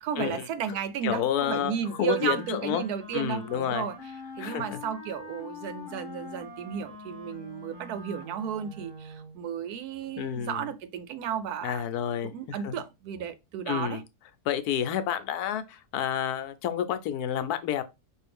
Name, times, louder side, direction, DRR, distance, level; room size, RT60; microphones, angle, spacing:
voice 1, 0.0-3.9 4.4-11.8 12.2-14.0, right 8 dB, 80° right, 1.1 m, -33 dB
voice 2, 1.0-2.8 3.1-3.9 4.4-4.8 10.2-10.7 11.6-12.8 13.7-14.0 14.5-17.8, left 10 dB, 75° left, 1.1 m, -30 dB
Wind instrument woodwind instrument, 1.5-9.4, left 2 dB, 25° right, 0.9 m, -44 dB
5.3 x 2.5 x 3.4 m
omnidirectional pair, 1.7 m